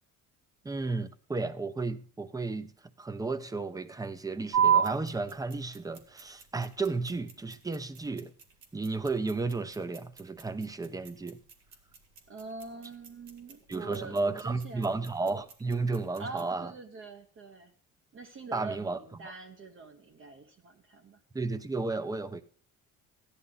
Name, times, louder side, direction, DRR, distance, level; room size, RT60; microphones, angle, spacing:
voice 1, 0.6-2.7 3.0-8.3 8.7-11.4 13.7-16.7 18.5-19.0 21.3-22.4, right 3 dB, 10° right, 0.7 m, -33 dB
sound 1, 4.5-16.5, right 8 dB, 65° right, 1.9 m, -34 dB
voice 2, 12.3-14.9 16.2-17.7 18.1-21.2, right 4 dB, 40° right, 1.1 m, -44 dB
14.0 x 10.0 x 3.9 m
cardioid pair, 120°, 30 cm